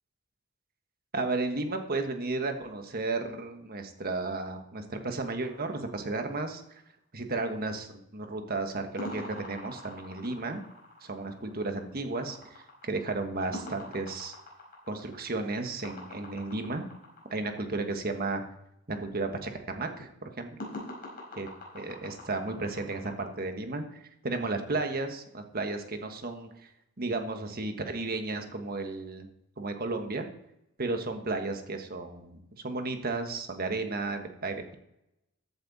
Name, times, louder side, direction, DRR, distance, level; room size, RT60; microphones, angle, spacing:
voice 1, 1.1-6.8 7.1-10.6 11.0-14.3 14.9-16.8 17.3-18.4 18.9-20.6 21.4-21.5 21.7-26.7 27.0-29.3 29.6-30.3 30.8-34.7, right 3 dB, 40° right, 5 dB, 1.4 m, -33 dB
sound 1, 5.4-6.8 9.0-17.6 20.6-23.2, left 1 dB, 40° left, 4.8 m, -44 dB
14.5 x 8.7 x 4.1 m, 0.83 s
head